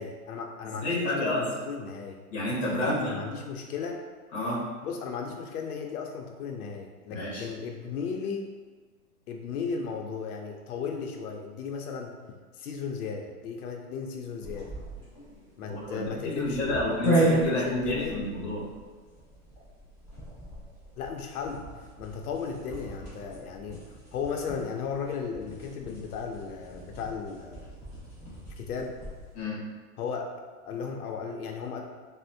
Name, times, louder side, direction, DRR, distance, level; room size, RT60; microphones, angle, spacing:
voice 1, 0.0-2.2 2.8-4.0 4.8-8.5 9.3-12.2 12.6-14.7 15.6-18.2 21.0-21.6 22.0-27.7 28.6-28.9 30.0-30.3 30.7-31.8, left 6 dB, 75° left, 2 dB, 0.5 m, -35 dB
voice 2, 0.6-1.5 2.3-3.2 4.3-4.7 7.1-7.5 15.7-18.6 29.3-29.6, left 1 dB, 25° left, -6 dB, 0.7 m, -30 dB
sound 1, 14.4-29.3, right 1 dB, 5° right, 1.3 m, -34 dB
4.2 x 2.0 x 2.6 m, 1.4 s
hypercardioid pair, 165°, 45 cm